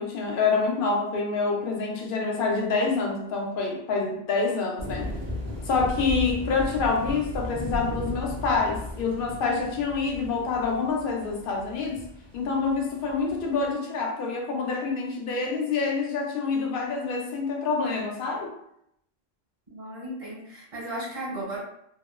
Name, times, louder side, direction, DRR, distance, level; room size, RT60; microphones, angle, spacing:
voice 1, 0.0-5.1 5.7-12.0 12.3-18.5, left 4 dB, 65° left, 0 dB, 0.7 m, -27 dB
sound 1, 4.8-13.7, left 1 dB, 45° right, 0.7 m, -36 dB
voice 2, 19.7-21.6, right 1 dB, 70° right, -5 dB, 1.3 m, -35 dB
2.8 x 2.0 x 2.2 m, 0.74 s
omnidirectional pair, 1.1 m